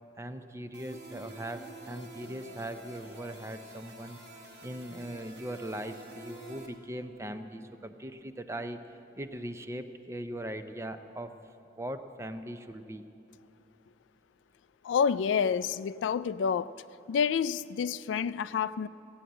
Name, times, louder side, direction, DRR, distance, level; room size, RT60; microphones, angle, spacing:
voice 1, 0.2-4.2 4.6-8.8 9.2-11.3 11.8-13.0, right 1 dB, 15° right, 0.5 m, -40 dB
sound 1, 0.7-6.7, right 2 dB, 65° right, 1.8 m, -48 dB
voice 2, 14.8-16.7 17.1-18.9, left 7 dB, 85° left, 0.3 m, -28 dB
15.5 x 8.7 x 7.9 m
head